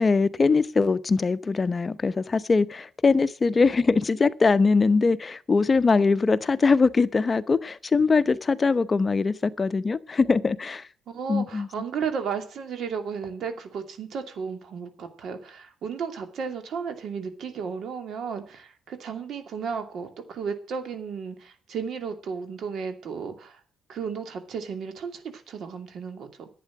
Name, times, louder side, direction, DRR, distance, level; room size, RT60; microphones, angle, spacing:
voice 1, 0.0-10.9 11.3-11.7, left 4 dB, 30° left, 0.8 m, -22 dB
voice 2, 11.1-23.6 23.9-26.5, right 6 dB, 65° right, 2.6 m, -34 dB
11.5 x 8.5 x 7.4 m
cardioid pair, 90°, 0 cm